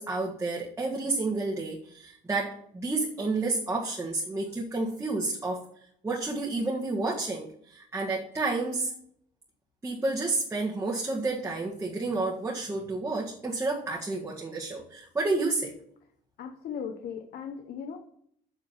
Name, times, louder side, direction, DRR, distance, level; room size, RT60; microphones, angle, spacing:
voice 1, 0.0-5.6 6.0-8.9 9.8-15.7, right 3 dB, 15° right, -3 dB, 1.7 m, -30 dB
voice 2, 16.4-18.0, left 7 dB, 65° left, 5 dB, 1.0 m, -37 dB
8.0 x 7.3 x 5.8 m, 0.67 s
cardioid pair, 110°, 17 cm